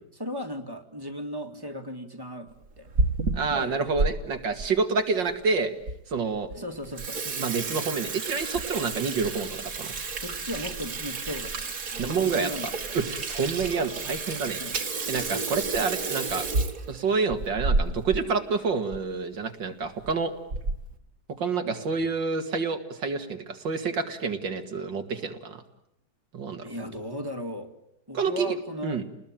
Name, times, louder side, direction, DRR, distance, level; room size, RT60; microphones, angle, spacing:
voice 1, 0.2-2.9 3.5-3.9 6.5-7.2 10.2-13.0 14.6-15.1 21.6-22.0 26.6-27.7 28.1-29.0, equal, 10° right, 6 dB, 2.1 m, -37 dB
Water tap faucet / Sink (filling or washing), 2.7-4.1 4.6-4.7 5.4-5.5 5.9-6.0 6.3-6.5 6.8-18.2 18.5-18.6 18.9-19.0 19.8-20.1 20.5-20.9, right 3 dB, 50° right, 2.2 m, -30 dB
voice 2, 3.4-5.7 6.1-6.5 7.4-9.9 12.0-12.5 12.9-14.6 15.1-16.5 16.9-20.3 21.4-25.6 26.3-26.7 28.1-28.5 28.8-29.0, right 4 dB, 85° right, 7 dB, 2.8 m, -28 dB
30.0 x 20.0 x 9.0 m, 0.83 s
omnidirectional pair, 1.9 m